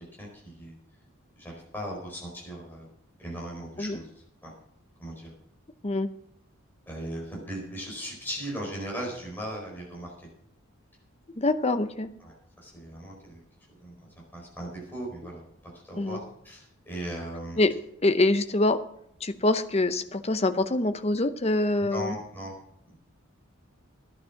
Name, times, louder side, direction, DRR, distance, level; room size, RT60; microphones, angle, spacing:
voice 1, 0.2-0.7 1.4-2.9 3.2-4.1 4.4-4.5 5.0-5.3 6.9-10.3 12.2-13.4 13.8-14.0 14.3-15.4 15.8-17.6 21.9-22.5, equal, 10° left, -3 dB, 4.5 m, -38 dB
voice 2, 11.4-12.1 16.0-16.2 17.6-17.7 18.0-18.8 19.2-22.2, left 2 dB, 30° left, 10 dB, 0.7 m, -25 dB
12.5 x 10.5 x 5.8 m, 0.71 s
head